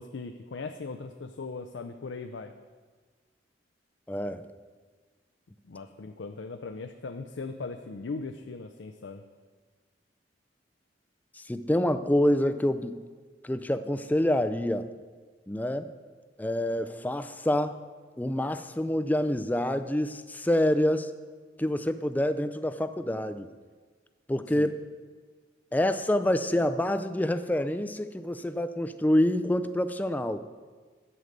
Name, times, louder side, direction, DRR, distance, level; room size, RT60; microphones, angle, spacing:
voice 1, 0.0-2.5 5.6-9.2 24.5-24.7, left 4 dB, 80° left, 6 dB, 0.5 m, -39 dB
voice 2, 4.1-4.5 11.4-13.0 13.4-14.9 15.5-15.9 16.4-17.8 18.2-21.1 21.6-23.5 24.3-24.7 25.7-30.4, left 1 dB, 10° left, 10 dB, 0.4 m, -27 dB
11.5 x 8.0 x 5.2 m, 1.4 s
head